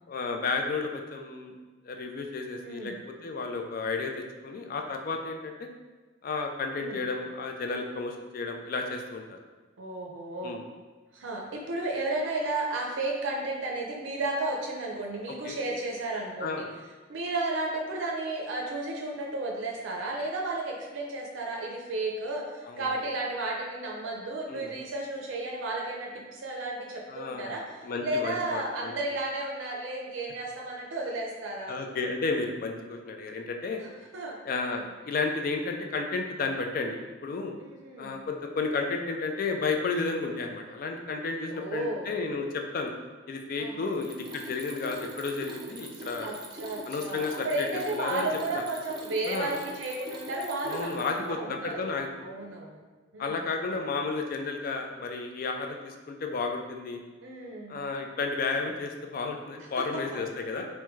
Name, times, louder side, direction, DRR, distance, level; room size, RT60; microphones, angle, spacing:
voice 1, 0.1-1.5 1.8-5.7 6.2-9.4 10.4-10.7 15.4-15.6 16.4-16.7 22.7-22.9 24.5-24.7 27.1-28.9 31.7-33.8 34.4-37.5 38.0-42.9 43.3-46.3 46.9-48.3 48.5-48.6 49.2-49.5 50.6-52.1 52.4-52.5 53.2-57.0 57.7-60.7, left 4 dB, 50° left, 4 dB, 0.3 m, -32 dB
voice 2, 2.6-3.0 6.8-7.0 9.8-10.6 11.1-16.6 17.1-27.6 28.0-31.8 33.8-33.9 34.1-34.4 34.6-34.9 37.6-38.2 41.5-42.1 43.6-43.9 45.9-51.8 52.2-52.8 53.1-53.4 57.2-57.7 59.8-60.0, right 2 dB, 85° right, 0 dB, 0.5 m, -33 dB
Mechanisms, 43.9-51.3, right 2 dB, 25° right, 0.3 m, -43 dB
3.4 x 2.2 x 3.1 m, 1.3 s
head